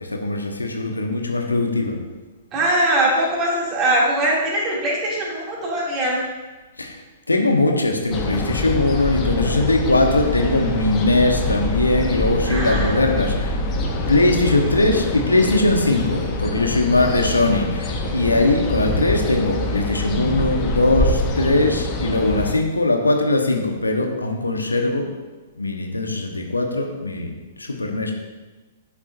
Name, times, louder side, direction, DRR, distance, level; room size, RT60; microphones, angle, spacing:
voice 1, 0.0-2.0 6.8-7.0 7.3-13.5 14.1-25.1 25.6-27.3 27.6-28.1, left 2 dB, 85° left, 3 dB, 1.1 m, -20 dB
voice 2, 2.5-6.2 12.4-13.0 13.2-13.3, right 1 dB, 25° right, -4 dB, 2.7 m, -21 dB
sound 1, 8.1-22.5, left 2 dB, 30° left, 1.2 m, -25 dB
11.0 x 7.3 x 2.6 m, 1.2 s
figure-of-eight pair, 110°, 0 cm